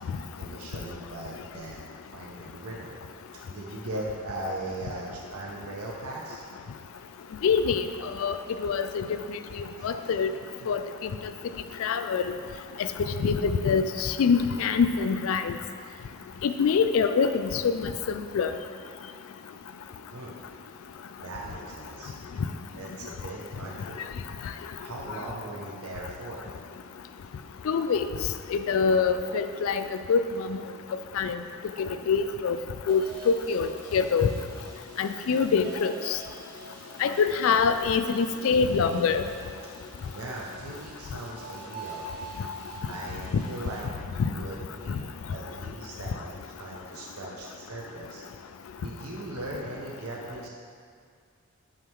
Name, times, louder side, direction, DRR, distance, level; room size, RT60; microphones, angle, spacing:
voice 1, 0.4-3.0 3.5-6.4 9.8-10.1 20.1-20.4 21.2-22.1 22.7-24.1 24.8-26.5 40.1-42.1 42.9-43.9 44.1-45.0 45.3-48.2 48.8-50.5, right 2 dB, 80° right, -3 dB, 0.7 m, -39 dB
voice 2, 7.4-7.8 8.2-8.4 8.6-9.0 9.8-10.3 10.7-10.8 11.8-12.2 12.8-12.9 13.2-15.5 16.4-18.5 27.7-28.1 28.5-30.6 31.2-31.4 31.8-32.6 32.9-34.3 35.0-36.2 37.0-39.2 44.2-44.3, left 5 dB, 70° left, 9 dB, 0.3 m, -24 dB
sound 1, 32.9-43.8, right 2 dB, 50° right, 1.5 m, -46 dB
8.9 x 4.5 x 3.6 m, 2.2 s
head